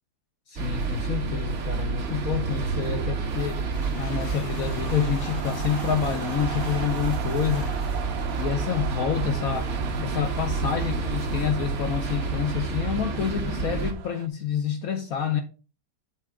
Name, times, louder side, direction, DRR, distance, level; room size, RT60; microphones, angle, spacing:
voice 1, 0.5-3.6 4.0-7.7 8.4-9.7 10.0-15.4, left 8 dB, 60° left, 1.1 m, -28 dB
sound 1, 0.6-13.9, right 4 dB, 45° right, 1.3 m, -29 dB
sound 2, 1.4-14.3, right 11 dB, 65° right, 0.9 m, -41 dB
sound 3, 3.5-9.3, left 4 dB, 40° left, 1.4 m, -46 dB
7.5 x 4.8 x 4.7 m
omnidirectional pair, 1.9 m